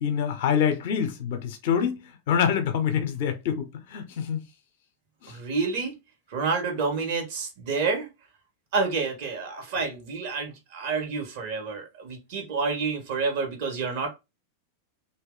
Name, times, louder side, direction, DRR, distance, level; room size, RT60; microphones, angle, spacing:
voice 1, 0.0-4.4 5.2-5.4, left 8 dB, 55° left, 0.8 m, -26 dB
voice 2, 5.3-6.0 6.3-8.1 8.7-14.1, right 4 dB, 50° right, 1.4 m, -29 dB
3.0 x 2.7 x 3.8 m
figure-of-eight pair, 90°, 0 cm